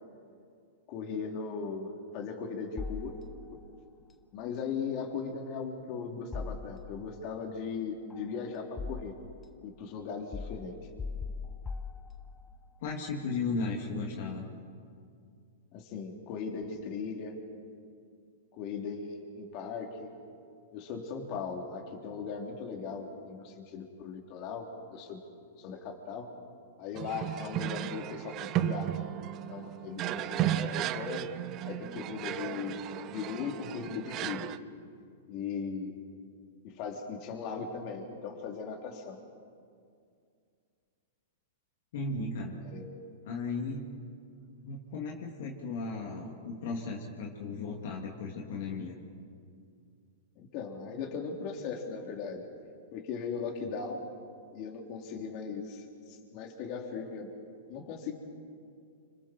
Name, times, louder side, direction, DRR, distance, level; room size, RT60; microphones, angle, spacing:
voice 1, 0.9-3.2 3.5-3.6 4.3-9.2 9.6-10.8 15.7-17.4 18.5-20.1 20.7-25.2 25.6-26.3 26.8-28.9 29.5-31.4 31.7-32.8 33.1-34.6 35.3-36.0 36.6-39.2 42.6-42.9 50.4-52.5 52.9-54.1 54.5-57.3 57.7-58.2, left 5 dB, 45° left, 2 dB, 3.6 m, -38 dB
sound 1, 2.8-3.7 6.3-7.2 8.1-9.4 10.3-12.6, left 4 dB, 15° left, 0.8 m, -40 dB
voice 2, 12.8-14.5 41.9-42.6 43.3-43.9 44.6-49.0, left 3 dB, 60° left, -1 dB, 2.8 m, -35 dB
sound 2, 26.9-34.6, right 13 dB, 35° right, 0.8 m, -34 dB
29.5 x 26.0 x 4.6 m, 2.3 s
hypercardioid pair, 130°, 0 cm